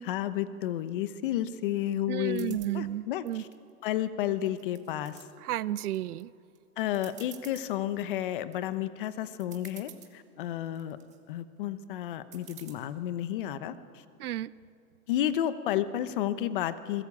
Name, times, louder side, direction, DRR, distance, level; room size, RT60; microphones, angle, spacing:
voice 1, 0.0-3.5 3.8-5.2 6.8-11.0 11.3-14.0 15.1-17.0, left 12 dB, 35° left, 13 dB, 0.9 m, -32 dB
voice 2, 2.1-3.4 5.4-6.3 14.2-14.5, right 13 dB, 85° right, 19 dB, 0.8 m, -32 dB
sound 1, 2.3-2.7 3.3-4.1 4.5-5.3 5.8-6.2 6.6-6.7 6.9-7.7 8.2-8.6 9.1-9.2 9.4-10.1 10.7-11.2 12.3-12.7, right 11 dB, 15° right, 1.6 m, -50 dB
22.5 x 21.5 x 8.4 m, 2.7 s
supercardioid pair, 170°, 43 cm